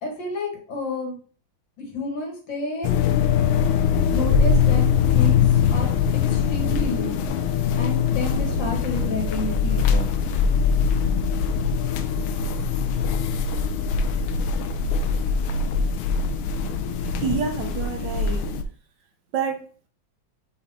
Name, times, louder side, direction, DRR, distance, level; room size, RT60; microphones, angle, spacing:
voice 1, 0.0-1.2 1.8-2.9 4.1-5.4 5.7-5.9 6.3-7.2 7.7-10.0, left 2 dB, 60° left, 0 dB, 2.5 m, -30 dB
sound 1, 2.8-18.6, left 6 dB, 90° left, 1.5 m, -22 dB
voice 2, 17.2-18.5 19.3-19.6, right 6 dB, 65° right, 5 dB, 1.3 m, -27 dB
5.5 x 4.0 x 4.4 m, 0.41 s
omnidirectional pair, 2.3 m